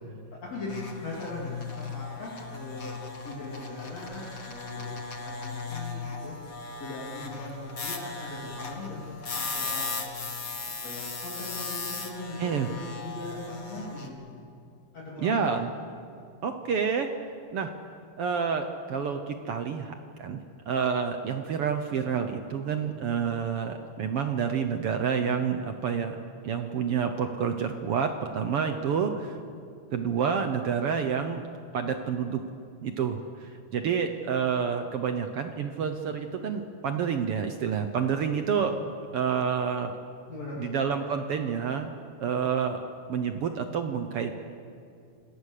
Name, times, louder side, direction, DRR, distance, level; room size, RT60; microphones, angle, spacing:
voice 1, 0.4-2.9 3.2-6.4 6.8-9.9 10.8-14.1 14.9-15.7 40.3-40.7, left 2 dB, 55° left, -6 dB, 4.3 m, -40 dB
sound 1, 0.7-14.1, left 4 dB, 35° left, 1.6 m, -37 dB
voice 2, 15.2-15.7 16.4-17.1 17.5-17.7 18.2-19.9 20.2-20.4 20.7-29.4 29.9-31.4 31.7-32.4 32.8-33.2 33.7-38.8 39.1-39.9 40.6-41.9 42.2-42.8 43.1-44.4, right 7 dB, 65° right, 6 dB, 1.5 m, -28 dB
28.0 x 18.5 x 6.7 m, 2.4 s
omnidirectional pair, 3.6 m